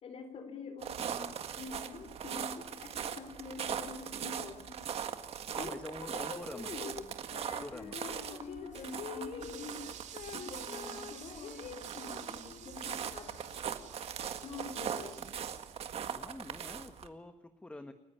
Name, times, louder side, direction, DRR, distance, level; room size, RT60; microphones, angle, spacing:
voice 1, 0.0-4.8 5.6-7.1 7.9-9.8 10.3-13.4 14.4-15.3, left 4 dB, 55° left, 9 dB, 3.8 m, -46 dB
sound 1, 0.8-17.1, right 8 dB, 55° right, 1.9 m, -40 dB
voice 2, 5.5-6.7 7.5-8.0 16.1-17.9, left 2 dB, 10° left, 8 dB, 1.3 m, -46 dB
Female singing, 7.3-13.8, left 7 dB, 90° left, 2.8 m, -48 dB
sound 2, 9.4-15.7, right 10 dB, 80° right, 2.6 m, -51 dB
30.0 x 16.0 x 10.0 m, 1.1 s
wide cardioid pair, 175°, 12 cm